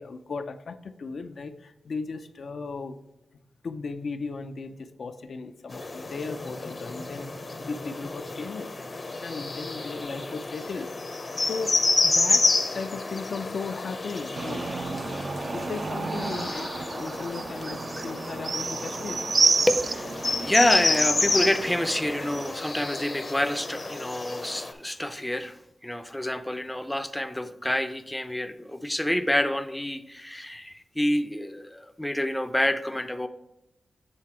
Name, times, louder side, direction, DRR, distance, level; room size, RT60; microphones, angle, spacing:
voice 1, 0.0-3.0 3.6-8.7 9.2-11.8 12.0-12.4 12.7-14.7 15.5-19.2, left 4 dB, 65° left, 7 dB, 0.5 m, -36 dB
sound 1, 5.7-24.7, left 3 dB, 40° left, 0.7 m, -30 dB
sound 2, 14.3-22.5, right 4 dB, 50° right, 0.4 m, -30 dB
voice 2, 19.7-20.2 20.4-33.3, left 1 dB, 10° left, 9 dB, 0.5 m, -27 dB
7.8 x 3.6 x 4.4 m, 0.88 s
wide cardioid pair, 90°, 0 cm